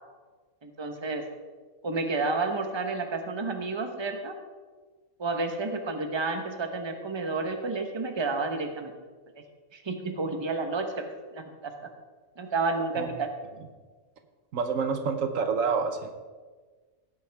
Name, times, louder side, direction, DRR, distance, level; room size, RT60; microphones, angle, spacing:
voice 1, 0.6-1.2 1.8-4.3 5.2-8.9 9.7-10.9 11.3-11.9 12.4-13.3, right 3 dB, 25° right, 5 dB, 1.0 m, -30 dB
voice 2, 14.5-16.1, right 5 dB, 80° right, 7 dB, 1.3 m, -27 dB
17.0 x 8.4 x 3.5 m, 1.4 s
omnidirectional pair, 1.3 m